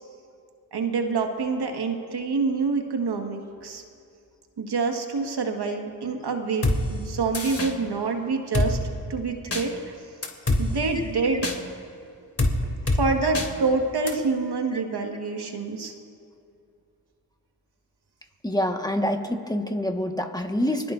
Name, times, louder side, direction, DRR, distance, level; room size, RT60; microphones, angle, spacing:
voice 1, 0.7-3.8 4.6-8.8 9.1-10.0 10.6-11.5 12.9-15.9, right 4 dB, 60° right, 3 dB, 1.8 m, -27 dB
Drum kit, 6.6-6.8 7.3-7.7 8.5-8.7 9.5-9.6 10.2-10.6 11.4-11.6 12.4-12.5 12.9-13.0 13.3-13.5 14.1-14.2, left 2 dB, 30° left, 3.0 m, -23 dB
voice 2, 18.4-20.9, left 1 dB, 10° left, 4 dB, 1.6 m, -26 dB
25.0 x 20.0 x 2.7 m, 2.4 s
supercardioid pair, 40°, 44 cm